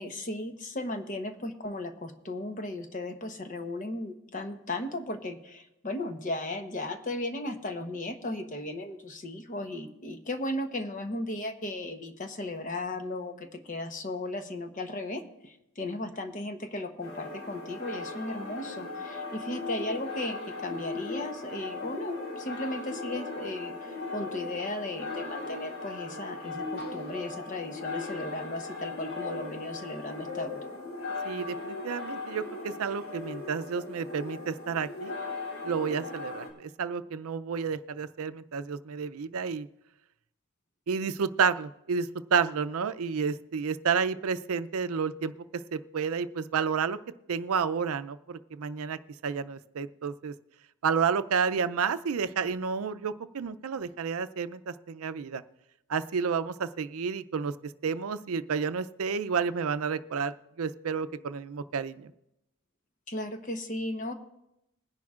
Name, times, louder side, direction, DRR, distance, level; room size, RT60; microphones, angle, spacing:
voice 1, 0.0-30.6 63.1-64.1, left 1 dB, 35° left, 6 dB, 0.9 m, -36 dB
sound 1, 17.0-36.5, left 3 dB, 85° left, 3.0 m, -38 dB
voice 2, 31.2-35.1 35.6-39.7 40.9-45.3 45.7-47.0 47.3-49.0 49.2-50.3 50.8-55.4 55.9-57.5 57.8-62.1, right 6 dB, 85° right, 12 dB, 0.5 m, -30 dB
21.0 x 10.5 x 2.4 m, 0.86 s
head